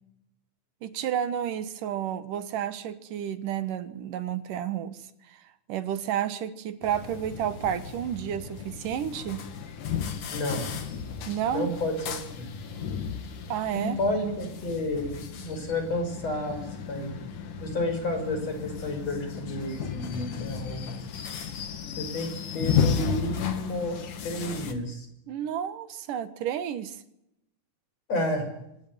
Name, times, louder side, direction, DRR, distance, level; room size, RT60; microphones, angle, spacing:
voice 1, 0.8-5.0 5.3-5.4 5.7-9.4 11.3-11.7 13.5-14.0 25.3-27.0, right 9 dB, 80° right, 13 dB, 3.0 m, -31 dB
sound 1, 6.8-24.7, left 7 dB, 80° left, 3.8 m, -34 dB
voice 2, 10.3-10.7 11.5-11.9 12.4-12.5 13.7-17.1 17.6-20.9 22.0-25.1 28.1-28.5, left 1 dB, 50° left, 5 dB, 7.2 m, -31 dB
26.0 x 17.5 x 9.5 m, 0.82 s
omnidirectional pair, 3.7 m